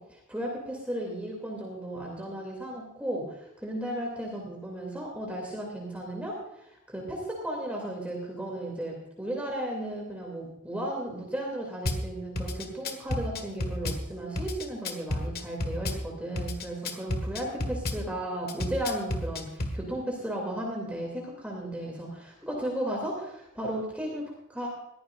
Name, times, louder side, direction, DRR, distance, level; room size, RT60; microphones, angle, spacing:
voice 1, 0.0-24.7, right 1 dB, 5° right, -1 dB, 2.7 m, -35 dB
Drum kit / Bass drum, 11.9-12.0 12.4-14.0 14.4-16.0 16.4-18.0 18.5-19.8, left 1 dB, 45° left, 1.6 m, -31 dB
21.5 x 14.5 x 2.6 m, 0.86 s
head